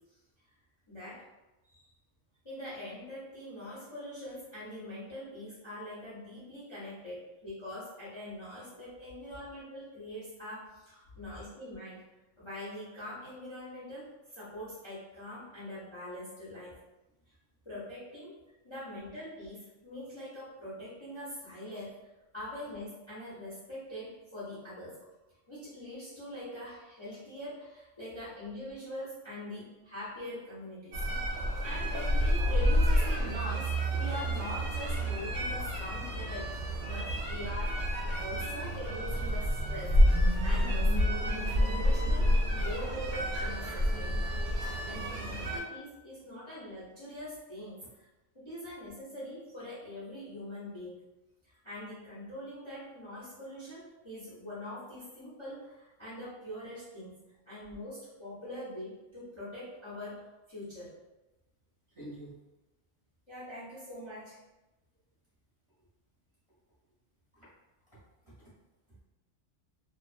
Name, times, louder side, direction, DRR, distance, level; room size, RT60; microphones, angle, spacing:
voice 1, 0.9-1.2 2.4-12.0 12.4-16.8 17.7-18.4 18.6-22.0 22.3-25.0 25.5-31.0 31.4-40.0 40.4-42.3 42.6-44.2 44.8-48.1 48.3-51.0 51.4-57.2 57.5-60.9 63.3-64.4, left 1 dB, 30° left, -10 dB, 0.5 m, -43 dB
sound 1, 30.9-45.6, equal, 65° right, 0.8 m, -29 dB
voice 2, 61.9-62.4 67.3-67.5 67.9-68.5 68.9-69.0, right 1 dB, 30° right, -10 dB, 0.8 m, -50 dB
2.3 x 2.3 x 2.4 m, 1.0 s
omnidirectional pair, 1.3 m